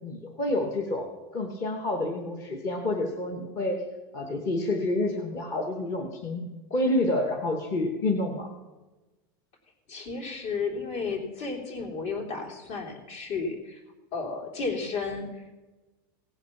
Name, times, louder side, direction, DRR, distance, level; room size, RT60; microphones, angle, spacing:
voice 1, 0.0-3.8 4.1-6.4 6.7-8.5, left 2 dB, 25° left, 2 dB, 1.0 m, -28 dB
voice 2, 9.9-13.8 14.1-15.5, left 4 dB, 60° left, 0 dB, 3.2 m, -33 dB
17.0 x 5.9 x 5.9 m, 1.1 s
supercardioid pair, 180°, 12 cm